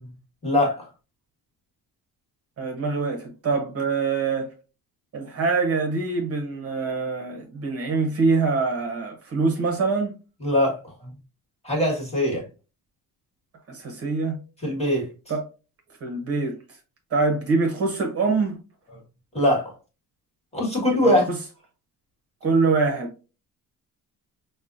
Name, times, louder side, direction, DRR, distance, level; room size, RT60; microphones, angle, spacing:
voice 1, 0.4-0.9 10.4-10.8 11.6-12.4 14.6-15.1 19.3-19.7 20.5-21.3, left 1 dB, 15° left, 1.4 m, -21 dB
voice 2, 2.6-4.5 5.1-10.1 13.7-14.4 15.3-15.5 16.0-16.6 17.1-18.6 20.9-21.4 22.4-23.2, right 4 dB, 40° right, 0.8 m, -24 dB
5.3 x 2.1 x 2.5 m
cardioid pair, 150°, 36 cm